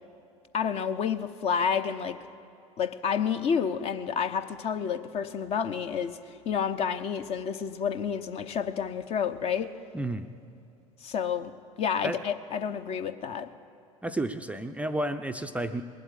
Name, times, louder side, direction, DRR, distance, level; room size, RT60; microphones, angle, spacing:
voice 1, 0.5-2.2 2.8-6.2 6.5-9.7 11.0-11.5 11.8-13.5, left 7 dB, 35° left, 11 dB, 0.8 m, -29 dB
voice 2, 9.9-10.3 12.0-12.2 14.0-15.8, right 1 dB, 5° right, 7 dB, 0.5 m, -31 dB
20.0 x 7.9 x 8.7 m, 2.6 s
figure-of-eight pair, 75°, 18 cm